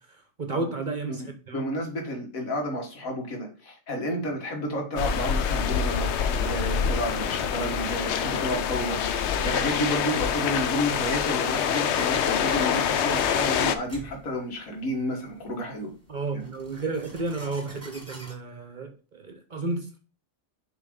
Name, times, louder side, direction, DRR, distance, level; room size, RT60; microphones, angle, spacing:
voice 1, 0.4-1.6 16.1-20.0, right 3 dB, 40° right, 0.8 m, -32 dB
voice 2, 1.1-9.0 9.4-15.9 16.3-16.4, equal, 85° left, 2.0 m, -31 dB
sound 1, 5.0-13.8, left 8 dB, 65° left, 0.8 m, -26 dB
sound 2, 10.4-18.3, right 2 dB, 10° right, 1.4 m, -45 dB
6.7 x 3.5 x 5.2 m
omnidirectional pair, 1.4 m